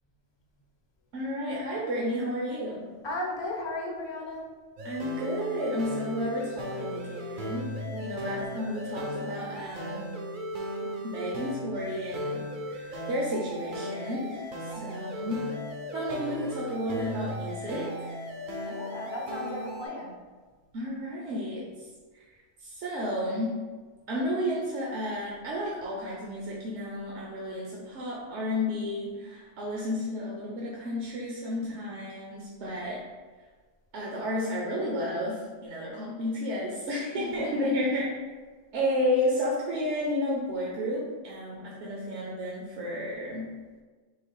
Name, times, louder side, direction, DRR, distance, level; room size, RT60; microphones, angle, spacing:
voice 1, 1.1-2.9 4.8-10.0 11.0-12.4 12.7-14.5 14.7-15.4 15.9-18.2 20.7-21.9 22.1-22.2 22.6-23.5 24.1-33.0 33.9-38.1 38.7-43.5, left 1 dB, 70° right, -4 dB, 1.0 m, -32 dB
voice 2, 3.0-4.4 7.9-8.5 14.7-14.8 18.6-20.1 37.2-37.9, left 2 dB, 30° left, -2 dB, 0.6 m, -36 dB
sound 1, 4.8-19.9, equal, 55° right, 0.6 m, -36 dB
3.8 x 2.8 x 4.6 m, 1.4 s
omnidirectional pair, 1.3 m